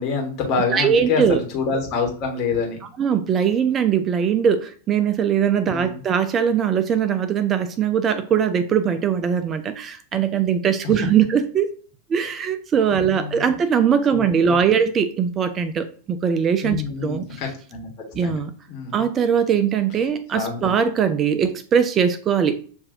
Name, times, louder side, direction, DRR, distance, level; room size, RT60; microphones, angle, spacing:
voice 1, 0.0-2.8 5.6-6.0 12.9-13.5 14.1-14.5 16.6-18.4 18.7-19.1 20.3-20.7, left 5 dB, 40° left, 0 dB, 1.3 m, -27 dB
voice 2, 0.7-1.4 3.0-11.7 12.1-17.4 18.1-18.5 18.9-22.5, right 7 dB, 25° right, 10 dB, 0.3 m, -21 dB
6.8 x 2.6 x 2.7 m, 0.42 s
figure-of-eight pair, 90°, 0 cm